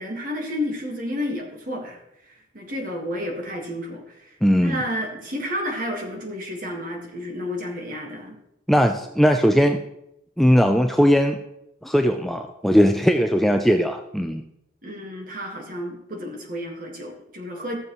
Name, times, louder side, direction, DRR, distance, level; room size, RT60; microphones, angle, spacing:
voice 1, 0.0-2.0 2.3-8.4 14.8-17.8, left 1 dB, 45° right, 1 dB, 1.8 m, -31 dB
voice 2, 4.4-4.8 8.7-9.8 10.4-11.4 11.8-14.4, equal, ahead, 5 dB, 0.3 m, -19 dB
14.5 x 7.0 x 3.1 m, 0.84 s
head